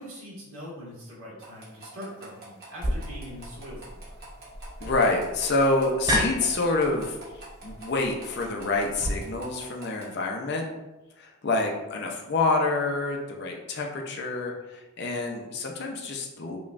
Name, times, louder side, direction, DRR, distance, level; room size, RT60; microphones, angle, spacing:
voice 1, 0.0-4.3, equal, 70° right, -6 dB, 1.4 m, -42 dB
sound 1, 1.4-10.1, right 2 dB, 45° right, 1.0 m, -47 dB
sound 2, 2.8-9.1, equal, 20° right, 0.4 m, -32 dB
voice 2, 4.8-10.6 11.2-16.6, left 2 dB, 50° left, 1 dB, 0.5 m, -27 dB
5.0 x 2.3 x 2.5 m, 1.0 s
head